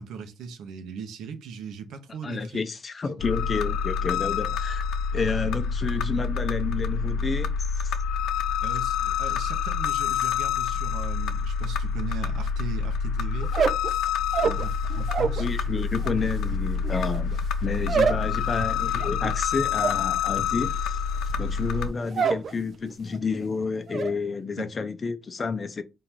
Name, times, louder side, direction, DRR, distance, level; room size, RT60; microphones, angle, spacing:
voice 1, 0.0-2.6 3.0-3.2 8.6-13.5 14.4-15.5 24.6-24.7, right 6 dB, 85° right, 0.9 m, -38 dB
voice 2, 2.2-4.9 5.1-8.0 15.4-21.0 21.4-25.8, left 4 dB, 35° left, 0.6 m, -30 dB
sound 1, 3.2-21.9, left 6 dB, 85° left, 0.5 m, -27 dB
sound 2, 13.4-15.5 15.7-22.5 22.8-23.3 23.6-24.1, right 6 dB, 55° right, 0.5 m, -28 dB
3.8 x 2.6 x 4.5 m
cardioid pair, 90°, 0 cm